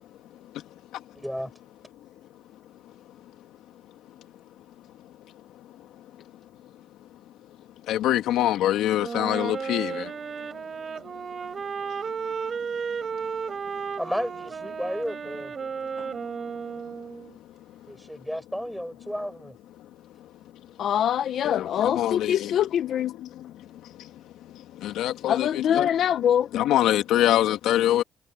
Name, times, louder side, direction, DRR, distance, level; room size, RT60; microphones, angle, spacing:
voice 1, 1.1-1.5 14.0-15.5 17.9-19.6, equal, ahead, 6.0 m, -32 dB
voice 2, 7.9-10.0 21.4-22.5 24.8-25.9 26.5-28.0, left 13 dB, 90° left, 2.3 m, -24 dB
Wind instrument woodwind instrument, 9.0-17.3, right 6 dB, 45° right, 6.2 m, -33 dB
voice 3, 20.8-23.2 25.3-26.5, left 9 dB, 70° left, 0.9 m, -24 dB
cardioid pair, 90°, 0 cm